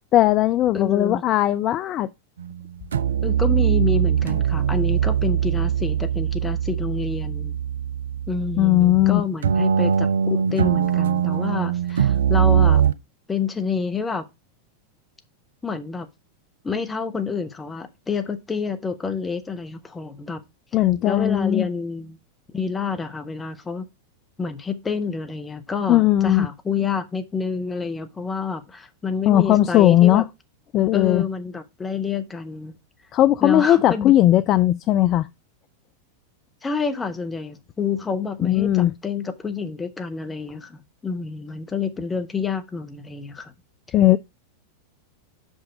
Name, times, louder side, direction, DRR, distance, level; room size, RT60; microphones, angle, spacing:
voice 1, 0.1-2.1 8.6-9.2 20.7-21.7 25.9-26.5 29.3-30.2 30.7-31.2 33.1-35.3 38.4-38.9 43.9-44.2, left 13 dB, 35° left, 0.3 m, -17 dB
voice 2, 0.7-1.2 3.2-7.5 8.3-12.8 13.3-14.2 15.6-16.1 16.6-20.4 21.0-22.2 22.5-23.9 24.4-30.2 30.9-32.7 33.4-34.2 36.6-43.5, left 5 dB, 15° left, 1.0 m, -28 dB
sound 1, 2.4-2.6 2.9-9.1 9.4-12.9, right 8 dB, 65° right, 0.4 m, -21 dB
5.8 x 5.3 x 4.8 m
figure-of-eight pair, 90°, 0 cm